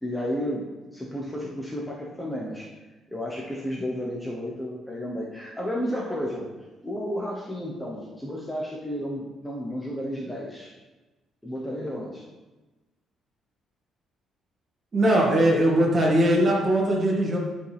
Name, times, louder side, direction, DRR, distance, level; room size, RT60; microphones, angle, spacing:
voice 1, 0.0-0.7 0.9-2.7 3.1-6.4 6.8-10.7 11.4-12.2, equal, 5° left, -3 dB, 1.0 m, -32 dB
voice 2, 14.9-17.4, right 1 dB, 35° right, -3 dB, 2.1 m, -20 dB
11.0 x 5.1 x 3.5 m, 1.2 s
cardioid pair, 125°, 0 cm